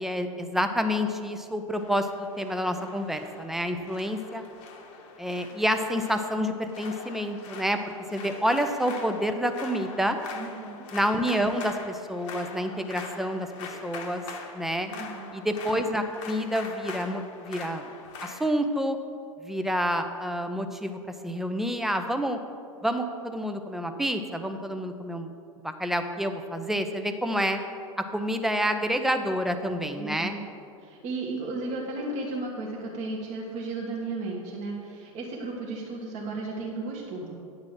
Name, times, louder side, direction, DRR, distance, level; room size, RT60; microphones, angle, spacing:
voice 1, 0.0-4.4 5.2-10.2 10.9-14.2 14.5-14.9 15.3-17.9 18.2-19.0 19.4-22.4 22.8-25.3 25.6-27.6 28.0-30.3, equal, ahead, 6 dB, 0.6 m, -28 dB
sound 1, 1.8-18.6, left 5 dB, 55° left, 1.1 m, -43 dB
voice 2, 10.3-10.9 14.9-15.4 29.9-30.4 30.8-37.3, right 2 dB, 40° right, -3 dB, 1.5 m, -34 dB
9.6 x 4.1 x 7.5 m, 2.5 s
hypercardioid pair, 95°, 18 cm